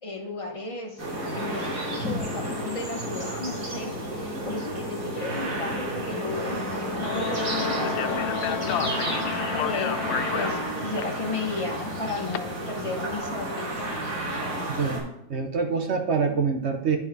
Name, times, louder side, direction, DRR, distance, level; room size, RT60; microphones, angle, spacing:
voice 1, 0.0-9.0 9.6-10.0 10.3-14.0, left 3 dB, 25° left, 1 dB, 0.7 m, -35 dB
sound 1, 1.0-15.0, right 1 dB, 75° right, 3.4 m, -31 dB
Wind instrument woodwind instrument, 7.0-10.7, left 10 dB, 45° left, 1.5 m, -34 dB
Speech, 7.8-12.4, left 10 dB, 80° left, 1.4 m, -33 dB
voice 2, 14.7-17.0, right 5 dB, 55° right, 5 dB, 0.7 m, -26 dB
10.5 x 4.8 x 4.1 m, 0.80 s
omnidirectional pair, 2.1 m